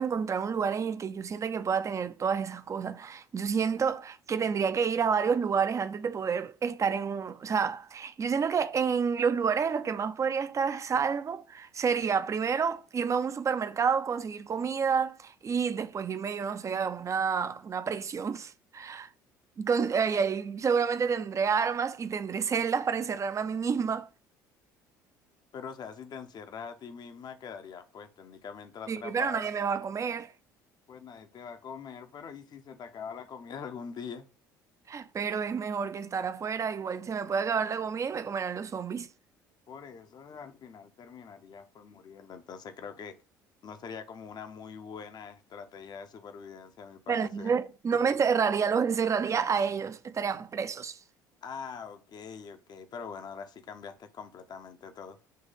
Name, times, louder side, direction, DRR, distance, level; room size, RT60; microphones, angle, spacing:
voice 1, 0.0-19.1 19.6-24.1 28.9-30.3 34.9-39.1 47.1-51.0, right 6 dB, 30° right, 0.6 m, -29 dB
voice 2, 25.5-29.5 30.9-34.3 39.7-43.1 43.6-47.5 48.0-48.1 51.4-55.2, left 6 dB, 40° left, 0.9 m, -43 dB
7.6 x 3.2 x 5.4 m
figure-of-eight pair, 60°, 10 cm